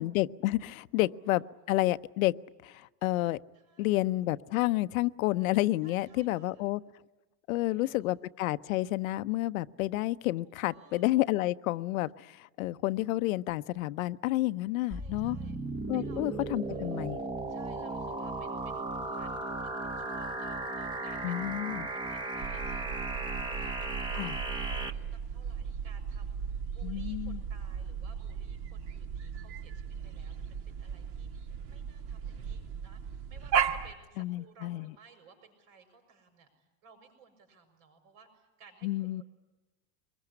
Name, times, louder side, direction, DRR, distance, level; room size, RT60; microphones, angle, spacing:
voice 1, 0.0-2.3 2.6-3.4 3.8-6.8 7.5-15.4 15.9-17.2 21.2-21.9 24.1-24.4 26.8-27.4 34.2-34.9 38.8-39.2, left 17 dB, 85° left, 14 dB, 0.8 m, -30 dB
voice 2, 1.3-1.7 3.5-4.0 5.8-6.6 7.5-8.1 10.7-11.0 12.6-13.0 14.8-15.6 15.9-17.0 17.5-21.3 21.9-38.9, right 5 dB, 70° right, 6 dB, 6.7 m, -59 dB
sound 1, 14.9-24.9, right 2 dB, 10° right, 0.9 m, -36 dB
sound 2, 22.4-33.9, right 7 dB, 55° right, 1.9 m, -36 dB
24.0 x 21.0 x 9.9 m, 1.1 s
supercardioid pair, 155°, 40 cm